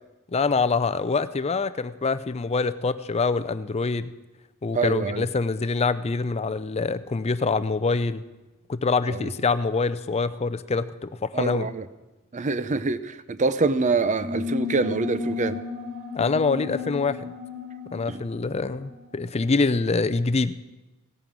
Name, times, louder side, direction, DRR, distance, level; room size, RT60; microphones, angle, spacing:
voice 1, 0.3-4.1 4.6-8.2 8.7-11.7 16.1-17.2 17.9-20.6, left 4 dB, 30° left, 13 dB, 0.5 m, -25 dB
voice 2, 4.7-5.3 9.1-9.3 11.3-11.8 12.3-15.6 18.1-18.2, right 3 dB, 35° right, 13 dB, 0.6 m, -25 dB
scary conch shell, 14.2-19.4, left 5 dB, 65° right, 4.3 m, -34 dB
17.0 x 9.0 x 6.1 m, 1.1 s
head